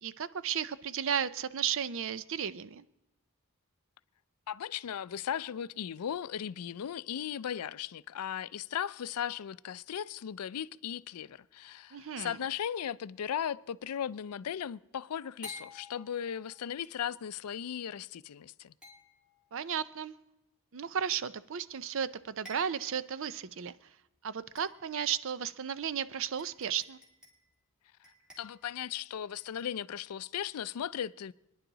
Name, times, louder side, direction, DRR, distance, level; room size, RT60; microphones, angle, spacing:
voice 1, 0.0-2.8 11.9-12.4 19.5-20.1 20.7-23.7 24.2-27.0, right 8 dB, 60° right, 0.5 m, -34 dB
voice 2, 4.5-18.7 28.4-31.3, left 9 dB, 85° left, 0.4 m, -37 dB
sound 1, 11.8-12.3 15.4-16.7 18.8-19.6 21.7-21.8 22.1-22.2 22.5-23.1 23.6-23.7 24.6-25.1 25.9-26.0 26.4-27.5 28.0-29.0 29.4-29.8, left 2 dB, 5° right, 2.9 m, -52 dB
27.5 x 10.5 x 3.9 m
head